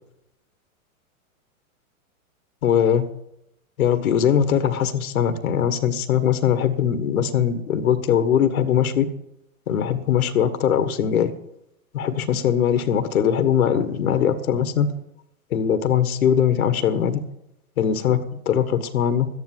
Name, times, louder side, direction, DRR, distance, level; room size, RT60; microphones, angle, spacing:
voice 1, 2.6-3.1 3.8-9.0 9.7-11.3 11.9-14.9 15.5-17.2 17.8-19.3, left 8 dB, 75° left, 1.6 m, -21 dB
13.5 x 10.0 x 7.5 m
hypercardioid pair, 115°, 43 cm